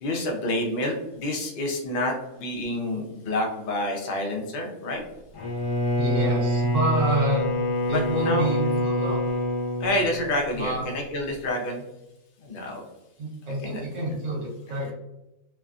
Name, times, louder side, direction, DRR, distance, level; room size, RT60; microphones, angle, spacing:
voice 1, 0.0-5.0 7.9-8.5 9.8-11.8 12.4-12.8 13.6-13.8, left 1 dB, 60° left, 1 dB, 0.5 m, -28 dB
Bowed string instrument, 5.3-10.7, left 1 dB, 75° left, 1.1 m, -26 dB
voice 2, 6.0-7.4 7.9-9.2 10.5-10.8 13.2-14.9, right 2 dB, 55° right, -3 dB, 1.2 m, -28 dB
3.2 x 2.1 x 2.4 m, 0.94 s
omnidirectional pair, 1.6 m